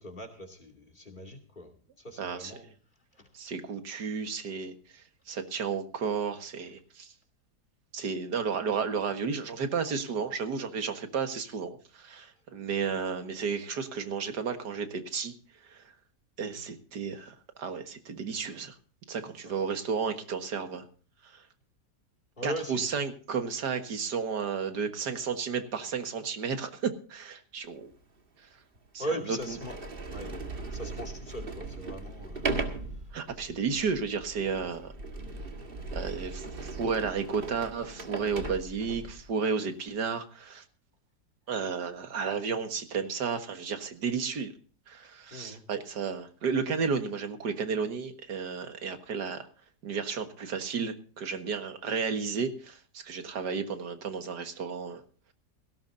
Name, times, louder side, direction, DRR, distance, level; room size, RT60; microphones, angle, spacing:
voice 1, 0.0-2.7 3.1-3.3 19.4-19.5 22.4-22.9 29.0-29.8 30.1-30.3 30.7-32.6 33.3-33.8 45.3-45.6, right 1 dB, 30° left, 3 dB, 2.7 m, -40 dB
voice 2, 2.2-2.5 3.3-7.1 7.9-15.3 15.7-15.8 16.4-18.7 19.1-20.8 21.2-21.4 22.4-27.9 28.9-29.1 33.1-34.9 35.9-40.6 41.5-44.5 44.9-49.5 49.8-55.0, right 5 dB, 85° right, 7 dB, 2.1 m, -33 dB
Sliding door, 27.9-28.0 28.8-28.9 29.3-39.2, right 3 dB, 35° right, 1.9 m, -38 dB
17.5 x 17.0 x 2.6 m, 0.39 s
omnidirectional pair, 1.7 m